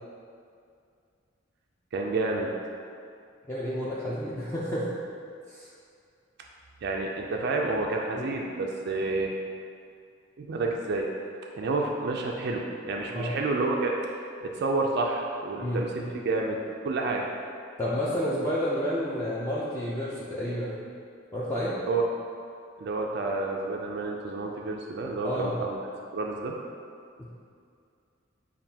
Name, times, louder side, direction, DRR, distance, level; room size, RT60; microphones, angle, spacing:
voice 1, 1.9-2.5 6.8-9.3 10.4-11.1 11.6-13.9 14.4-17.3 21.9-22.1 22.8-25.8 26.1-26.6, right 3 dB, 55° right, 0 dB, 0.4 m, -29 dB
voice 2, 3.5-4.9 5.5-5.7 8.1-8.4 13.1-13.3 15.6-16.1 17.8-20.9 21.3-21.7 25.2-25.6 27.2-27.3, equal, 15° left, -9 dB, 0.5 m, -30 dB
7.3 x 2.5 x 2.8 m, 2.4 s
head